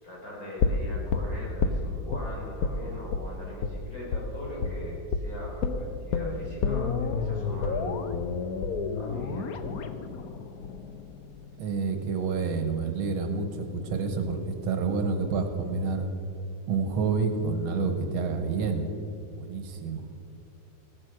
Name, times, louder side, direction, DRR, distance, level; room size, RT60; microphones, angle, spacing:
voice 1, 0.0-7.9 8.9-9.5, equal, 40° left, -4 dB, 4.4 m, -41 dB
sound 1, 0.6-2.2 2.6-2.8 3.1-3.3 3.6-3.8 4.1-4.3 4.6-4.8 5.1-5.3 5.6-11.6 11.9-12.0, left 4 dB, 60° left, 1.0 m, -30 dB
voice 2, 11.6-16.1 16.7-18.9 19.4-20.1, right 4 dB, 85° right, 6 dB, 2.0 m, -28 dB
15.5 x 9.7 x 6.3 m, 2.5 s
omnidirectional pair, 2.3 m